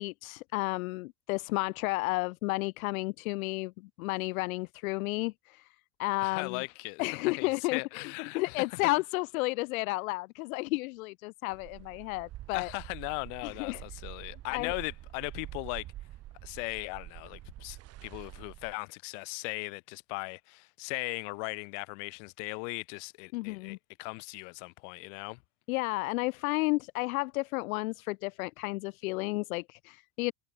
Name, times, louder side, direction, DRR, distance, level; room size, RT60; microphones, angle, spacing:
voice 1, 0.0-5.7 6.0-6.6 7.0-12.7 13.4-13.8 14.5-14.7 23.3-23.8 25.7-30.3, left 23 dB, 85° left, 2.4 m, -32 dB
voice 2, 6.2-7.0 7.4-8.8 12.5-15.9 16.4-25.4, left 40 dB or more, 60° left, 7.8 m, -38 dB
sound 1, 11.5-18.7, right 15 dB, 35° right, 4.4 m, -46 dB
cardioid pair, 170°, 41 cm